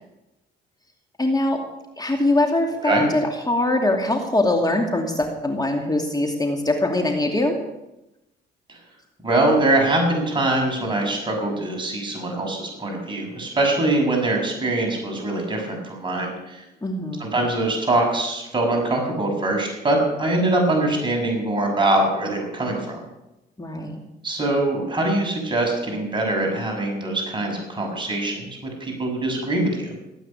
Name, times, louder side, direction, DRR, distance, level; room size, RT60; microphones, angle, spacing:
voice 1, 1.2-1.6 2.0-7.5 16.8-17.4 23.6-24.0, left 2 dB, 20° left, 3 dB, 2.7 m, -22 dB
voice 2, 9.2-16.6 17.2-23.0 24.2-29.9, right 2 dB, 25° right, 0 dB, 6.7 m, -23 dB
16.5 x 9.1 x 8.6 m, 0.95 s
cardioid pair, 90°, 20 cm